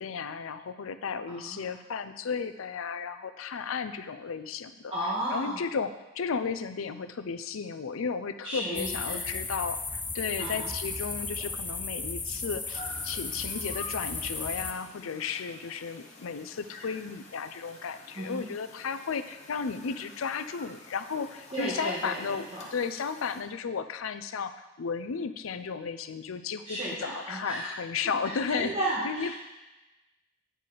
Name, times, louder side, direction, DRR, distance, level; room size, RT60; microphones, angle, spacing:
voice 1, 0.0-4.9 5.3-9.8 10.1-28.7 29.0-29.4, left 5 dB, 80° left, 11 dB, 0.5 m, -34 dB
voice 2, 1.3-1.6 4.9-5.6 8.4-9.2 10.4-10.7 18.1-18.5 21.5-22.7 26.7-27.7 28.2-29.4, right 1 dB, 30° right, -7 dB, 1.5 m, -34 dB
sound 1, 8.7-14.7, left 3 dB, 10° left, 0.4 m, -35 dB
sound 2, 12.7-23.4, left 2 dB, 35° left, 0.9 m, -49 dB
9.1 x 6.5 x 3.9 m, 1.0 s
head